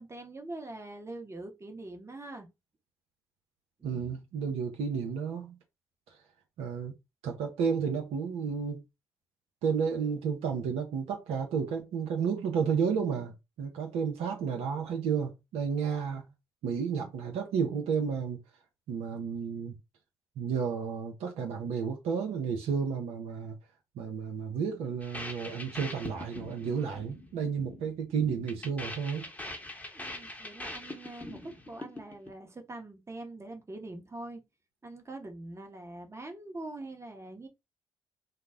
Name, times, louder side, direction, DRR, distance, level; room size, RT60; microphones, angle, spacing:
voice 1, 0.0-2.5 3.8-4.2 29.9-34.4 34.8-37.5, right 2 dB, 25° right, 0.9 m, -43 dB
voice 2, 3.8-5.6 6.6-6.9 7.2-8.8 9.6-16.3 16.6-18.4 18.9-19.8 20.4-23.6 24.0-29.2, right 6 dB, 70° right, 0.6 m, -32 dB
sound 1, 25.0-32.3, left 1 dB, 15° left, 0.8 m, -43 dB
2.3 x 2.0 x 3.5 m
hypercardioid pair, 45°, 11 cm